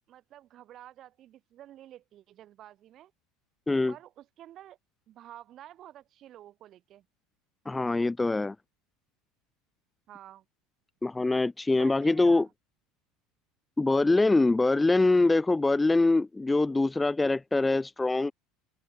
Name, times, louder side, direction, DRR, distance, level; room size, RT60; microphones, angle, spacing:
voice 1, 0.1-3.1 3.9-4.8 5.1-7.1 10.1-10.5 11.7-12.5, right 12 dB, 40° right, 1.8 m, -50 dB
voice 2, 7.7-8.6 11.0-12.5 13.8-18.3, left 2 dB, 10° left, 0.3 m, -24 dB
open air
figure-of-eight pair, 70°, 0 cm